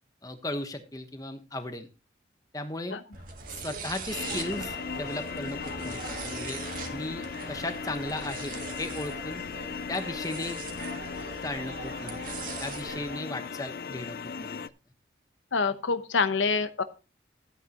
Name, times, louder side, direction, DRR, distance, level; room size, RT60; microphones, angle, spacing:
voice 1, 0.2-1.9 2.5-2.9 3.5-6.6 6.9-9.4 9.9-10.6 11.4-14.6, left 2 dB, 20° left, 7 dB, 1.1 m, -36 dB
sound 1, 3.1-12.9, right 4 dB, 45° right, 1.9 m, -42 dB
sound 2, 3.4-13.2, right 2 dB, 70° right, 3.3 m, -45 dB
sound 3, 4.1-14.7, left 6 dB, 50° left, 0.4 m, -38 dB
voice 2, 15.5-16.8, left 4 dB, 90° left, 11 dB, 0.9 m, -26 dB
13.5 x 9.1 x 2.9 m, 0.31 s
head